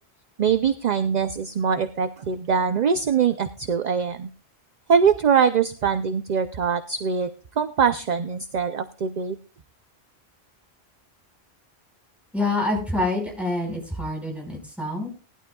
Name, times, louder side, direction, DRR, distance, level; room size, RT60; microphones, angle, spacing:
voice 1, 0.4-4.3 4.9-9.4, right 6 dB, 50° right, 10 dB, 0.7 m, -23 dB
voice 2, 12.3-15.1, left 2 dB, ahead, -1 dB, 4.9 m, -26 dB
18.5 x 12.0 x 2.3 m, 0.37 s
omnidirectional pair, 1.1 m